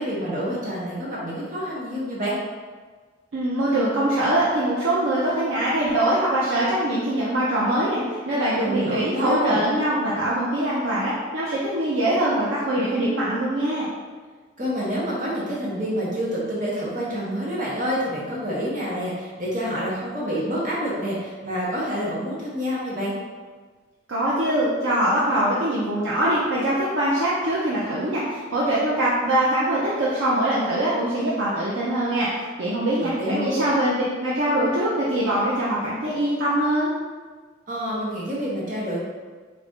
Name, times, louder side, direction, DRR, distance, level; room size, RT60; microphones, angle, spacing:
voice 1, 0.0-2.4 8.6-9.6 14.6-23.1 33.0-33.7 37.7-39.0, equal, 45° right, -6 dB, 0.8 m, -27 dB
voice 2, 3.3-13.9 24.1-36.9, right 1 dB, 80° right, -7 dB, 0.7 m, -23 dB
4.1 x 2.6 x 3.5 m, 1.5 s
head